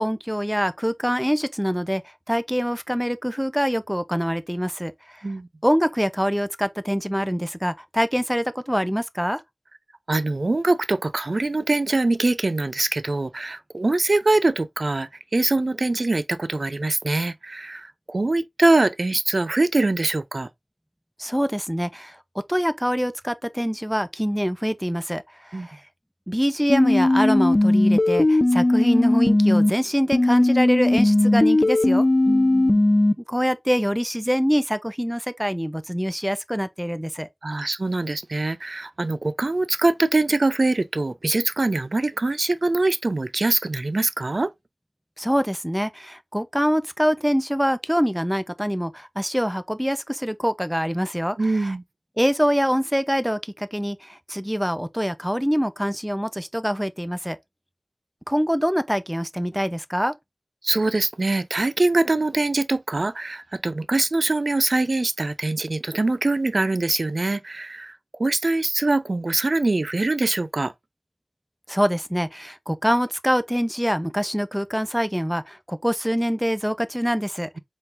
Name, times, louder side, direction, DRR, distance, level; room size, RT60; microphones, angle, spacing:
voice 1, 0.0-5.3 5.6-9.4 21.2-22.2 22.5-25.8 26.3-32.1 33.3-37.3 45.2-51.7 52.2-57.4 58.3-60.1 71.7-77.6, equal, 5° right, 0.5 m, -24 dB
voice 2, 10.1-20.5 25.5-25.7 32.2-32.9 37.4-44.5 51.4-51.8 60.6-70.7, right 2 dB, 70° right, 0.4 m, -23 dB
sound 1, 26.7-29.7 30.1-33.1, left 2 dB, 45° left, 0.5 m, -18 dB
4.5 x 3.8 x 2.5 m
wide cardioid pair, 40°, 0 cm